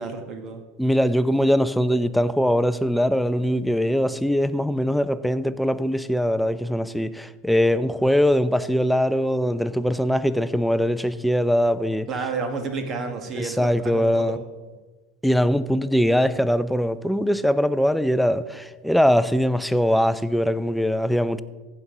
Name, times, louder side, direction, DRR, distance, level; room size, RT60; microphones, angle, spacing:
voice 1, 0.0-0.6 12.1-14.4, right 4 dB, 40° right, 1.6 m, -30 dB
voice 2, 0.8-12.1 13.3-14.4 15.2-21.4, equal, ahead, 0.4 m, -22 dB
15.0 x 5.5 x 3.9 m
hypercardioid pair, 90°, 0 cm